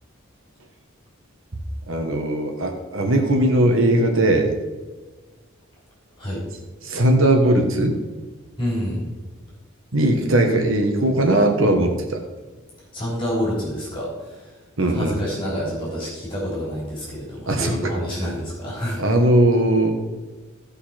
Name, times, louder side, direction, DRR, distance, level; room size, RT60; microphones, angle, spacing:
voice 1, 1.9-4.5 6.8-8.0 9.9-12.2 14.8-15.2 17.5-17.9 19.0-20.0, right 1 dB, 70° right, 3 dB, 1.4 m, -19 dB
voice 2, 8.6-9.0 12.9-14.4 14.9-19.0, equal, 25° left, -6 dB, 3.7 m, -28 dB
16.0 x 5.6 x 4.3 m, 1.3 s
head